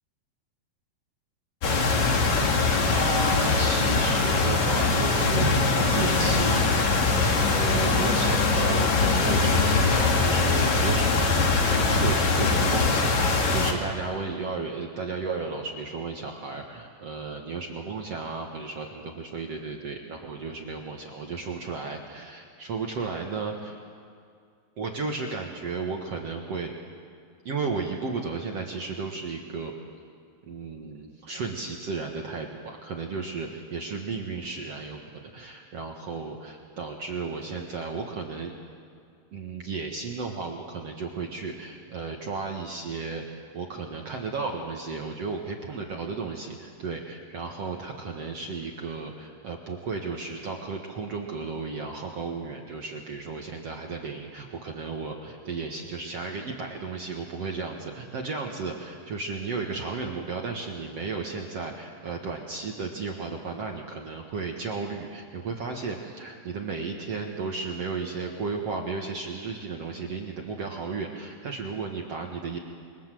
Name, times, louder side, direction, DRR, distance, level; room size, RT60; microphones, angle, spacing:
sound 1, 1.6-13.7, left 3 dB, 45° left, 2.9 m, -22 dB
voice 1, 2.9-23.8 24.8-26.7 27.4-29.7 30.4-38.5 39.3-72.6, right 4 dB, 65° right, 1 dB, 1.6 m, -34 dB
27.5 x 23.5 x 7.7 m, 2.3 s
omnidirectional pair, 5.3 m